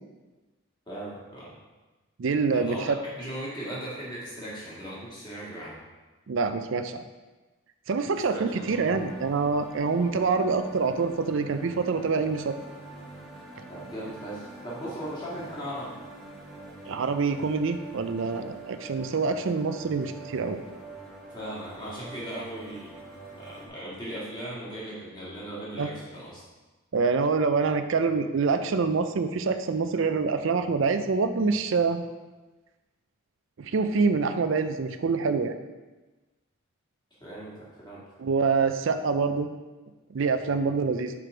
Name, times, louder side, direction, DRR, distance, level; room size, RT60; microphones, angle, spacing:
voice 1, 0.9-1.5 2.5-5.8 8.3-9.0 13.7-15.9 21.3-23.0 23.3-26.4 37.2-38.2, right 1 dB, 20° left, -7 dB, 2.0 m, -38 dB
voice 2, 2.2-2.9 6.3-7.0 7.9-12.6 16.9-20.6 25.8-25.9 26.9-32.0 33.6-35.5 38.2-39.5 40.1-41.1, right 4 dB, 60° right, 9 dB, 0.4 m, -26 dB
sound 1, 8.6-23.7, right 2 dB, ahead, 1.0 m, -45 dB
6.0 x 5.0 x 5.0 m, 1.2 s
head